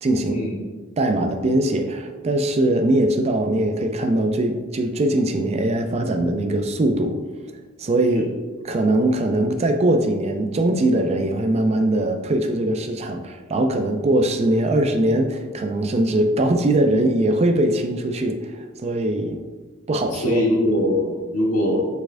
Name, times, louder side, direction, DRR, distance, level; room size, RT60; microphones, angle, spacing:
voice 1, 0.0-0.4 1.0-7.2 7.8-8.3 8.6-19.4 19.9-20.4, right 1 dB, 30° right, 6 dB, 0.3 m, -21 dB
voice 2, 20.1-21.9, left 1 dB, 80° left, -3 dB, 1.4 m, -22 dB
4.7 x 4.2 x 2.5 m, 1.3 s
head